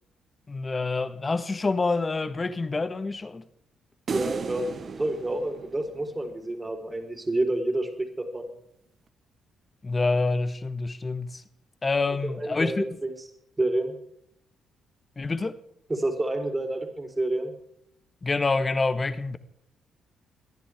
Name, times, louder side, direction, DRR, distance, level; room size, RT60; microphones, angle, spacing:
voice 1, 0.5-3.4 9.8-11.4 11.8-12.8 15.2-15.6 18.2-19.4, left 3 dB, 30° left, 1.4 m, -27 dB
voice 2, 4.1-8.5 12.2-13.3 13.6-14.0 15.9-17.5, right 2 dB, 25° right, 4.0 m, -29 dB
sound 1, 4.1-6.5, right 6 dB, 50° right, 1.2 m, -35 dB
24.5 x 10.5 x 3.6 m
hypercardioid pair, 50°, 0 cm